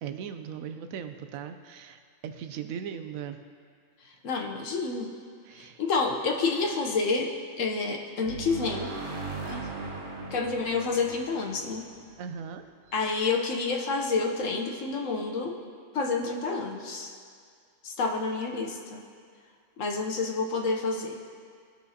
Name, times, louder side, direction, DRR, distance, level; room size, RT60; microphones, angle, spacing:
voice 1, 0.0-3.4 5.4-5.8 12.2-12.7, right 8 dB, 90° right, 9 dB, 1.0 m, -38 dB
voice 2, 4.2-5.1 5.8-7.3 7.6-8.9 9.5-9.7 10.3-11.8 12.9-15.5 15.9-17.1 17.8-19.0 19.8-21.2, left 4 dB, 70° left, 1 dB, 1.2 m, -29 dB
sound 1, 8.2-12.8, right 3 dB, 60° right, 1.3 m, -38 dB
17.5 x 6.1 x 2.8 m, 2.1 s
omnidirectional pair, 1.4 m